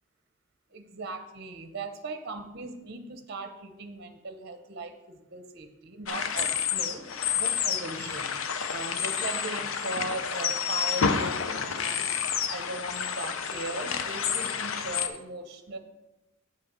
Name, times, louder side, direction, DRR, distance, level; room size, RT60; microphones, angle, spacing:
voice 1, 0.7-7.0 7.3-8.3 8.7-12.2 12.5-15.8, right 2 dB, 55° right, 8 dB, 0.8 m, -38 dB
sound 1, 6.1-15.1, left 7 dB, 90° left, 0.6 m, -29 dB
8.1 x 5.7 x 5.1 m, 0.97 s
head